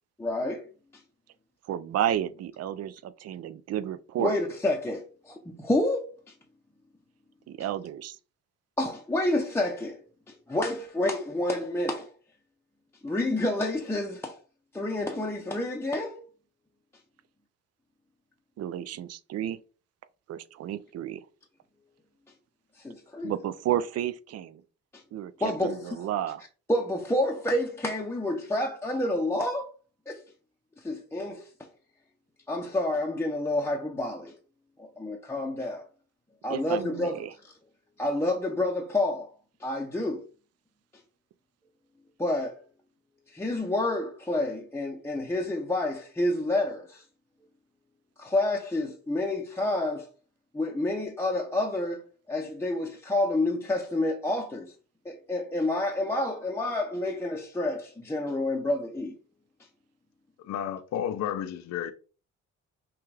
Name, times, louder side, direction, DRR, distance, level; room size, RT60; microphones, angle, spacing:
voice 1, 0.2-0.7 4.2-6.1 8.8-10.0 10.3-12.1 13.0-14.4 14.7-16.2 22.8-23.3 24.9-25.0 25.4-26.1 26.7-29.7 30.1-30.2 30.8-31.7 32.5-34.4 34.8-35.9 36.4-37.5 38.0-39.3 39.6-40.2 42.2-42.6 43.3-47.0 48.2-50.1 50.5-54.7 55.0-59.1, left 1 dB, 10° left, 0.6 m, -29 dB
voice 2, 1.7-4.3 7.5-8.2 18.6-19.6 20.3-21.2 23.2-24.6 25.1-26.4 36.5-37.3, right 11 dB, 55° right, 0.5 m, -32 dB
voice 3, 60.4-61.9, left 10 dB, 65° left, 0.5 m, -32 dB
5.8 x 2.3 x 3.2 m
cardioid pair, 90°, 30 cm